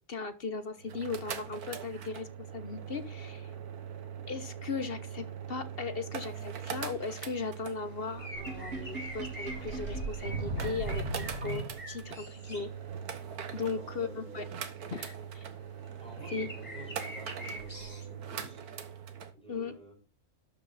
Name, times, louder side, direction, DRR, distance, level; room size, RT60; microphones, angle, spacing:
voice 1, 0.1-2.3 2.5-3.5 4.3-12.7 13.5-14.4 14.9-15.5 16.3-16.5 19.5-19.7, left 4 dB, 45° left, 1.1 m, -37 dB
sound 1, 0.8-19.3, right 8 dB, 85° right, 1.7 m, -41 dB
sound 2, 6.9-7.4 8.0-12.7 16.1-18.1, equal, 25° left, 4.1 m, -44 dB
Sink (filling or washing), 8.3-12.1, right 2 dB, 50° right, 3.0 m, -38 dB
voice 2, 13.5-14.5 16.0-18.7 19.3-19.9, right 1 dB, 5° left, 4.7 m, -51 dB
12.5 x 7.3 x 4.1 m
omnidirectional pair, 1.6 m